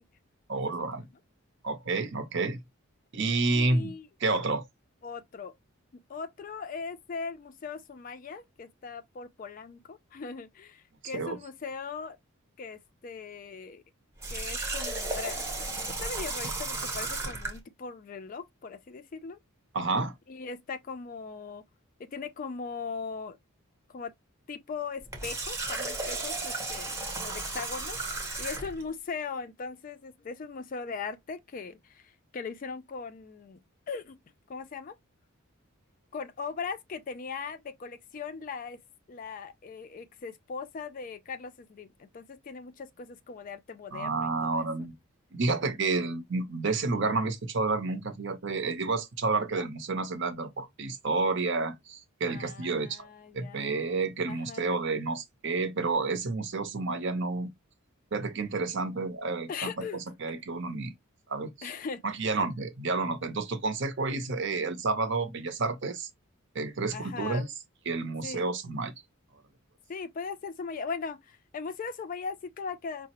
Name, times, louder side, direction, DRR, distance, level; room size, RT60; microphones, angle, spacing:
voice 1, 0.5-1.1 1.6-2.6 3.1-3.9 4.2-4.6 11.1-11.4 19.7-20.1 43.9-44.9 45.3-53.1 53.3-57.5 58.1-60.9 61.3-61.7 62.0-66.1 66.5-67.5 67.9-68.9, right 3 dB, 55° right, 0.7 m, -30 dB
voice 2, 3.5-4.1 5.0-5.5 5.9-12.2 12.6-13.8 14.3-15.6 16.0-19.4 20.3-21.6 22.1-23.4 23.9-24.1 24.5-33.6 33.9-34.2 34.5-35.0 36.1-38.8 39.1-44.6 49.5-49.7 52.2-53.8 54.3-54.7 59.5-60.0 60.3-60.4 61.6-62.0 66.9-67.4 68.2-68.5 69.9-73.1, left 5 dB, 40° left, 0.3 m, -39 dB
Water tap faucet, 14.2-17.6 25.0-28.8, right 2 dB, 15° right, 0.7 m, -34 dB
4.7 x 2.0 x 2.9 m
head